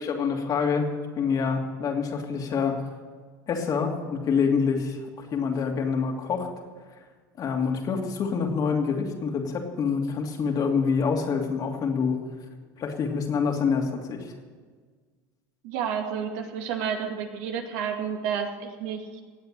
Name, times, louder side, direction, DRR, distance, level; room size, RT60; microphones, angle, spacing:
voice 1, 0.0-2.8 3.5-6.5 7.4-12.2 12.8-14.3, left 5 dB, 45° left, 2 dB, 2.7 m, -26 dB
voice 2, 15.6-19.0, right 7 dB, 70° right, 3 dB, 2.4 m, -30 dB
17.5 x 8.1 x 8.9 m, 1.5 s
supercardioid pair, 100°, 9 cm